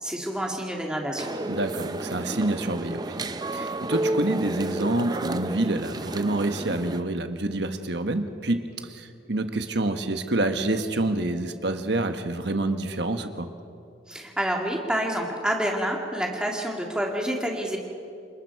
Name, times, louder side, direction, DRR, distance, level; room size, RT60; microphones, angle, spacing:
voice 1, 0.0-1.3 14.1-17.8, equal, 5° right, 0 dB, 2.1 m, -28 dB
sound 1, 1.2-7.0, right 2 dB, 20° right, 0.5 m, -31 dB
voice 2, 1.5-13.5, right 2 dB, 60° right, 7 dB, 1.3 m, -27 dB
28.0 x 20.0 x 4.7 m, 2.6 s
head